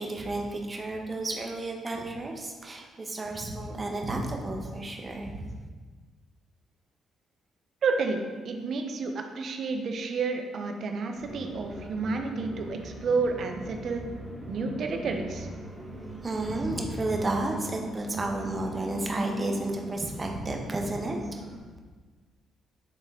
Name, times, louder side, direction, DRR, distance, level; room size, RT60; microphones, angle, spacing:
voice 1, 0.0-5.5 16.2-21.2, right 2 dB, 30° right, 2 dB, 1.0 m, -32 dB
voice 2, 7.8-14.1 14.5-15.5, right 4 dB, 60° right, 4 dB, 0.8 m, -30 dB
sound 1, 11.2-21.6, right 1 dB, 5° left, 1.5 m, -40 dB
8.0 x 3.7 x 3.6 m, 1.4 s
cardioid pair, 90°, 0 cm